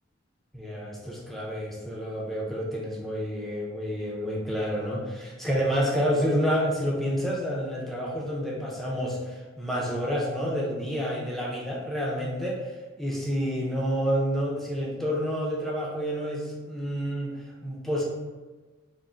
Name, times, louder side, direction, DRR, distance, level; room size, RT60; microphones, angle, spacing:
voice 1, 0.5-12.7 13.0-17.3 17.6-18.0, equal, ahead, -4 dB, 0.5 m, -29 dB
3.6 x 2.1 x 4.0 m, 1.3 s
head